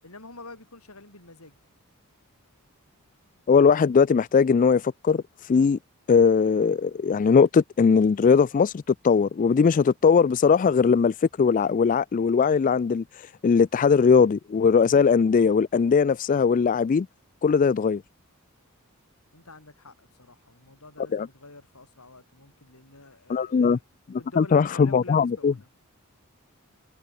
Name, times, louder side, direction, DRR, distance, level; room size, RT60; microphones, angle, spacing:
voice 1, 0.0-1.6 19.3-23.8 24.1-25.7, left 2 dB, 80° left, 7.0 m, -47 dB
voice 2, 3.5-5.8 6.1-17.1 17.4-18.0 21.1-21.3 23.3-23.8 24.4-25.5, left 5 dB, 35° left, 0.3 m, -20 dB
head